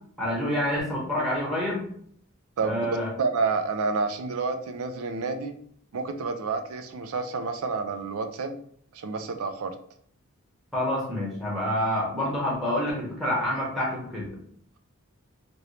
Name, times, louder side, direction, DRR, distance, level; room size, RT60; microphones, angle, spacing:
voice 1, 0.2-1.8 2.6-3.1 10.7-14.4, left 1 dB, ahead, -5 dB, 0.9 m, -27 dB
voice 2, 3.2-5.5 5.9-8.6 8.9-9.7, right 4 dB, 80° right, 8 dB, 0.4 m, -29 dB
2.9 x 2.6 x 3.1 m, 0.63 s
head